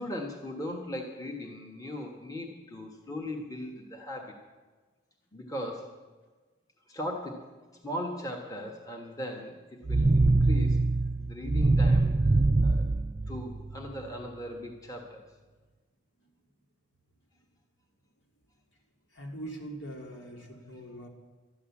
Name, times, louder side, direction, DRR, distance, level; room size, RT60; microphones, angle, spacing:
voice 1, 0.0-4.3 5.3-5.9 6.9-7.5 7.8-10.8 11.2-12.3 12.6-12.9 13.3-15.3 20.4-20.8, left 1 dB, 20° left, 1 dB, 1.3 m, -38 dB
sound 1, 9.9-13.9, right 2 dB, 25° right, 0.3 m, -24 dB
voice 2, 19.1-21.1, right 1 dB, 70° left, 1 dB, 2.5 m, -42 dB
13.0 x 10.0 x 7.2 m, 1.3 s
head